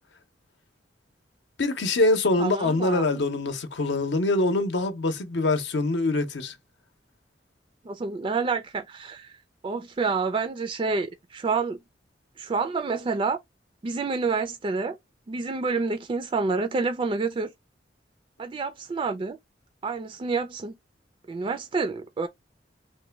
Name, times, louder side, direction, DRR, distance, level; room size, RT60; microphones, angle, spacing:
voice 1, 1.6-6.5, left 2 dB, 75° left, 0.7 m, -24 dB
voice 2, 2.4-3.0 7.9-9.3 9.6-11.8 12.4-13.4 13.8-15.0 15.3-17.5 18.4-19.4 19.8-20.7 21.3-22.3, right 4 dB, 30° right, 0.3 m, -28 dB
3.1 x 2.2 x 3.3 m
head